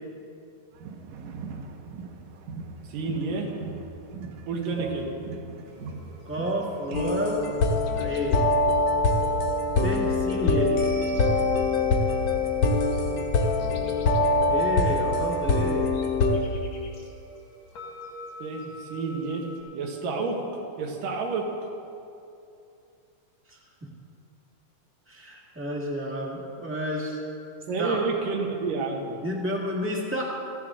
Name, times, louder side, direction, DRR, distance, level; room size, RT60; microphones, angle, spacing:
sound 1, 0.7-7.2, right 4 dB, 70° right, 2.1 m, -40 dB
voice 1, 2.9-3.5 4.5-5.1 18.4-19.5 19.7-20.4 20.8-21.5 27.7-29.2, right 4 dB, 90° right, 1 dB, 3.1 m, -29 dB
sound 2, 5.7-19.6, right 1 dB, 85° left, 3.3 m, -46 dB
voice 2, 6.2-7.5 8.0-8.4 9.8-10.7 14.5-15.9 23.5-23.6 25.1-27.2 27.8-28.0 29.2-30.2, equal, 10° right, -3 dB, 0.7 m, -30 dB
sound 3, 6.9-16.4, left 2 dB, 60° left, 2.0 m, -24 dB
17.0 x 14.5 x 3.8 m, 2.7 s
omnidirectional pair, 3.7 m